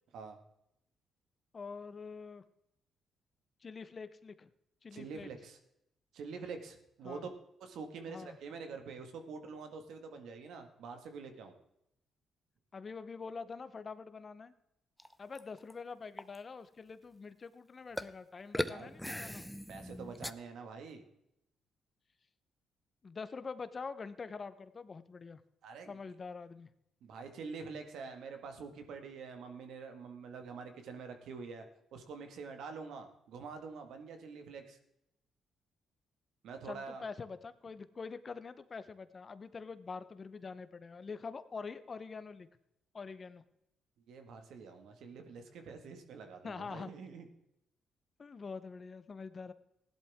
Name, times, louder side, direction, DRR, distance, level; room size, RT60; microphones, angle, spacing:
voice 1, 1.5-2.4 3.6-4.5 4.8-5.3 7.0-7.3 8.1-8.4 12.7-14.5 15.2-19.4 23.0-25.4 25.9-26.7 36.6-42.5 42.9-43.4 46.4-46.9 48.2-49.5, left 5 dB, 35° left, 13 dB, 0.8 m, -45 dB
voice 2, 4.9-5.6 6.1-7.3 7.6-11.5 18.6-18.9 19.7-21.0 25.6-26.0 27.0-31.7 31.9-34.8 36.4-37.1 44.1-47.3, right 5 dB, 75° right, 6 dB, 1.8 m, -46 dB
sound 1, 15.0-15.7 16.2-16.4 18.0-18.1 18.5-20.3, left 1 dB, 5° left, 0.6 m, -39 dB
16.0 x 11.5 x 3.6 m, 0.80 s
cardioid pair, 90°, 0 cm